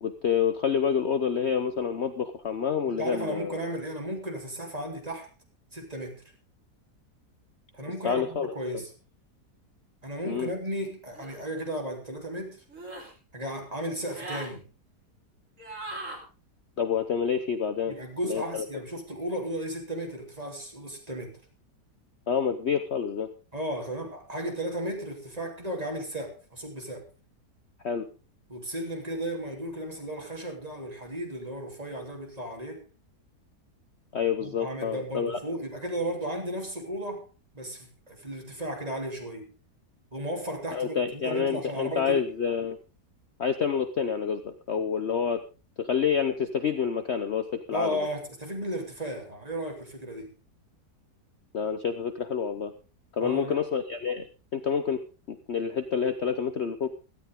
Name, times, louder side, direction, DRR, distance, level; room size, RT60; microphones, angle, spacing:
voice 1, 0.0-3.6 8.0-8.5 10.3-10.5 16.8-17.9 18.2-18.6 22.3-23.3 27.8-28.1 34.1-35.4 40.7-42.8 43.4-45.4 45.8-48.0 51.5-52.7 53.1-54.3 54.5-55.0 55.3-56.9, left 7 dB, 50° left, 10 dB, 1.0 m, -28 dB
voice 2, 2.8-5.3 5.7-6.2 7.7-8.9 10.0-12.6 13.3-14.7 17.9-21.4 23.5-27.1 28.5-32.8 34.4-37.3 37.5-39.5 40.1-42.2 47.7-50.3 53.2-53.6, right 1 dB, 20° right, 1 dB, 3.5 m, -34 dB
sound 1, 11.1-11.4 12.7-13.1 14.0-14.5 15.6-16.2, right 2 dB, 50° right, 3.7 m, -39 dB
17.0 x 13.5 x 3.7 m, 0.33 s
omnidirectional pair, 1.8 m